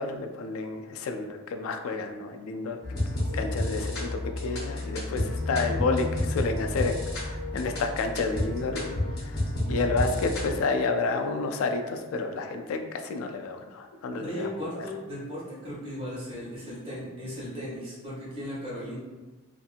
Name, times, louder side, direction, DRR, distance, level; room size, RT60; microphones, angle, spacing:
voice 1, 0.0-2.8 3.3-8.9 9.7-14.5 14.8-14.9, left 3 dB, 85° left, 5 dB, 0.3 m, -30 dB
sound 1, 2.8-10.6, left 1 dB, 55° left, 0.7 m, -30 dB
voice 2, 14.1-19.0, equal, 25° right, -8 dB, 1.2 m, -37 dB
2.7 x 2.5 x 2.4 m, 1.2 s
head